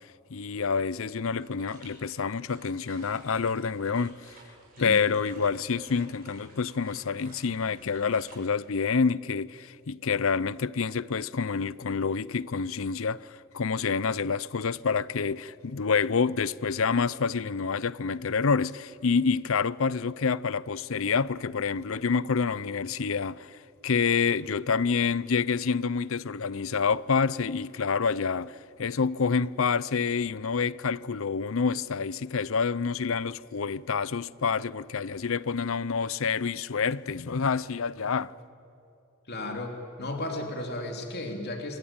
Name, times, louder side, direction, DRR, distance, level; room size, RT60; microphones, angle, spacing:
voice 1, 0.3-4.4 4.8-38.3, left 5 dB, 65° left, 0.6 m, -28 dB
sound 1, 1.4-8.4, right 3 dB, 45° right, 7.1 m, -55 dB
voice 2, 39.3-41.8, left 1 dB, 50° left, 3.1 m, -34 dB
27.5 x 24.5 x 8.8 m
head